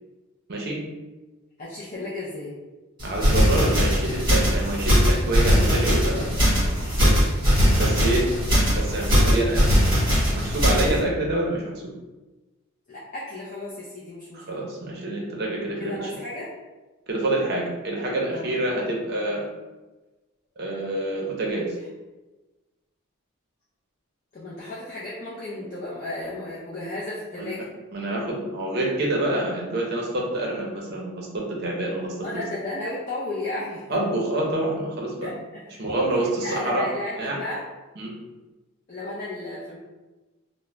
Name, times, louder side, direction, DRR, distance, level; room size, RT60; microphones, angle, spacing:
voice 1, 0.5-0.8 3.0-6.3 7.0-7.2 7.8-8.3 8.7-9.6 10.3-11.9 14.3-16.1 17.1-19.4 20.6-21.7 27.4-27.5 27.9-32.1 33.9-35.3 35.8-36.9 37.2-37.4 38.0-38.1, right 1 dB, 45° right, -2 dB, 0.6 m, -27 dB
voice 2, 1.6-2.6 5.4-5.6 12.9-14.4 15.8-16.5 18.3-18.5 24.3-27.6 32.2-33.8 35.2-35.6 36.4-37.6 38.9-39.8, left 1 dB, 35° left, -8 dB, 0.4 m, -34 dB
sound 1, 3.0-11.0, equal, 20° right, 1.2 m, -20 dB
2.4 x 2.0 x 3.1 m, 1.1 s
head